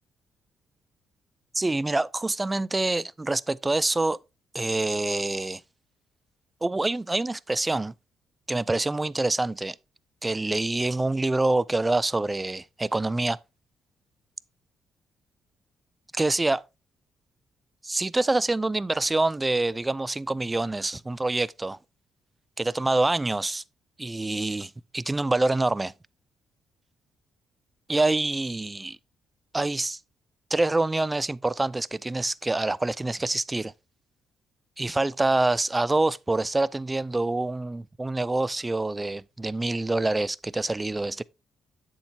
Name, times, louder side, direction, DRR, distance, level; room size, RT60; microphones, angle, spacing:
voice 1, 1.5-4.2 4.5-5.6 6.6-7.9 8.5-9.8 10.2-13.4 16.1-16.6 17.8-21.8 22.6-23.6 24.0-25.9 27.9-29.0 29.5-30.0 30.5-33.7 34.8-41.2, right 2 dB, 15° right, 0.3 m, -26 dB
7.8 x 7.2 x 2.8 m
cardioid pair, 90°, 0 cm